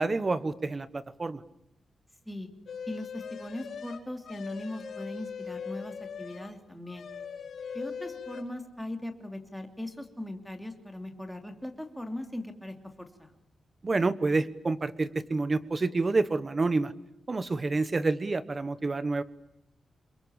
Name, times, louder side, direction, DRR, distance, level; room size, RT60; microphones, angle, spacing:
voice 1, 0.0-1.4 13.8-16.9 17.3-19.2, right 3 dB, 25° right, 15 dB, 1.2 m, -28 dB
sound 1, 2.7-6.5 6.8-8.4, left 6 dB, 65° left, 4.3 m, -40 dB
voice 2, 2.9-7.1 7.7-13.3, left 1 dB, ahead, 5 dB, 2.9 m, -39 dB
29.0 x 22.5 x 8.8 m, 0.79 s
wide cardioid pair, 170°, 0 cm